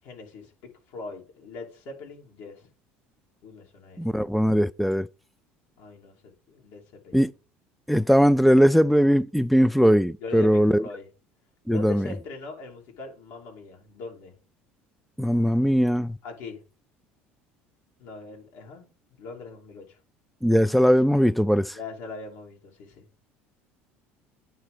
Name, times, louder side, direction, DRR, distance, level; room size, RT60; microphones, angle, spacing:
voice 1, 0.0-2.7 3.4-4.3 5.8-7.3 10.2-11.1 11.7-14.4 15.6-15.8 16.2-16.6 18.0-20.0 21.7-23.1, left 3 dB, 65° left, 2.9 m, -41 dB
voice 2, 4.0-5.1 7.1-7.3 7.9-10.8 11.7-12.1 15.2-16.2 20.4-21.8, equal, ahead, 0.4 m, -20 dB
9.2 x 3.8 x 6.7 m
hypercardioid pair, 75°, 6 cm